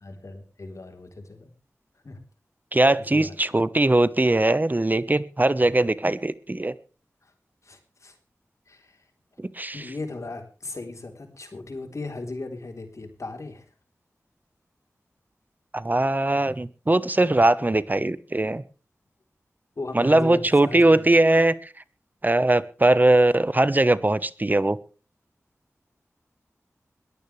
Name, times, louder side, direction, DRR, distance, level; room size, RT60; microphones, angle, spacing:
voice 1, 0.0-1.5 2.0-2.2 3.1-3.6 7.2-7.3 7.6-8.2 8.7-9.0 9.7-13.7 19.8-21.1, left 2 dB, 65° left, 5 dB, 3.7 m, -37 dB
voice 2, 2.7-6.7 9.4-9.8 15.7-18.6 19.9-21.7 22.2-24.8, right 2 dB, 35° right, 15 dB, 1.1 m, -20 dB
21.5 x 14.0 x 3.3 m, 0.37 s
cardioid pair, 45°, 6 cm